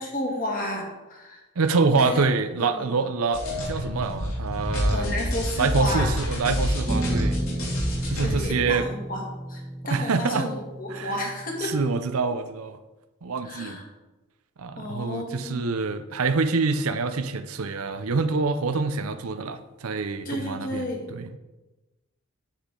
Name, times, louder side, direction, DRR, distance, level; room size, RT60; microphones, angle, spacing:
voice 1, 0.0-1.4 1.9-2.2 2.6-3.1 4.9-6.1 8.2-9.2 9.5-11.8 13.4-13.8 14.8-15.6 20.2-21.1, left 1 dB, 40° left, -1 dB, 2.2 m, -32 dB
voice 2, 1.6-5.1 5.6-7.5 8.0-8.9 9.9-10.5 10.9-11.3 11.6-12.8 13.2-13.8 14.6-21.3, right 4 dB, 85° right, 9 dB, 0.6 m, -26 dB
sound 1, 3.3-8.5, equal, 80° left, 3.2 m, -27 dB
sound 2, 6.9-11.9, right 1 dB, 15° right, 0.5 m, -33 dB
10.0 x 8.6 x 3.8 m, 1.1 s
head